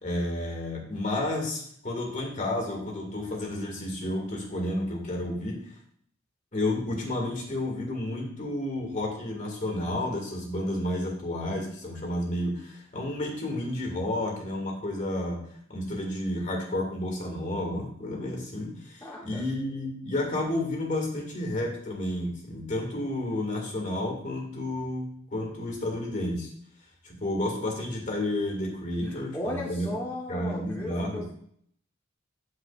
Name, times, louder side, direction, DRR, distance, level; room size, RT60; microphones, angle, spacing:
voice 1, 0.0-5.6 6.5-15.4 15.7-26.5 27.0-29.9 30.3-31.3, left 1 dB, 45° left, 0 dB, 2.0 m, -31 dB
voice 2, 19.0-19.4 29.0-31.3, left 1 dB, 10° left, -5 dB, 1.1 m, -36 dB
8.6 x 7.5 x 2.5 m, 0.64 s
head